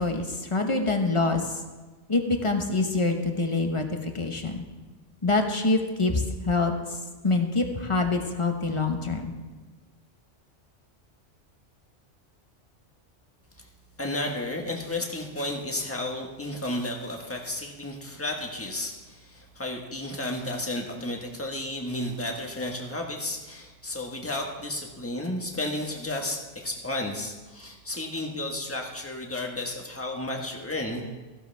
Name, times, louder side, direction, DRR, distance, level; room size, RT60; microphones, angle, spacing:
voice 1, 0.0-1.6 2.1-4.6 5.2-7.0 7.2-9.3, left 3 dB, 25° left, 4 dB, 1.1 m, -25 dB
voice 2, 14.0-31.0, left 1 dB, 10° left, 1 dB, 1.4 m, -32 dB
15.0 x 12.5 x 3.5 m, 1.2 s
omnidirectional pair, 1.2 m